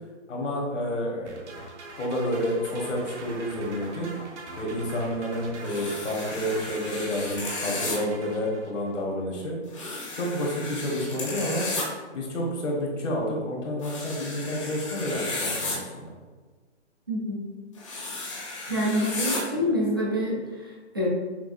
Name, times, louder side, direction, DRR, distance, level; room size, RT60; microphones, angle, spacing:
voice 1, 0.3-1.6 2.0-4.1 4.6-9.6 10.1-11.7 12.1-16.1, equal, 85° left, -2 dB, 1.4 m, -29 dB
sound 1, 1.3-9.0, right 2 dB, 75° right, 1.0 m, -42 dB
sound 2, 5.6-8.0 9.7-11.8 13.8-15.8 17.8-19.4, left 2 dB, 25° left, 0.6 m, -34 dB
voice 2, 17.1-17.4 18.7-21.1, equal, 20° right, -5 dB, 0.4 m, -27 dB
5.8 x 2.4 x 2.5 m, 1.4 s
hypercardioid pair, 165°, 35 cm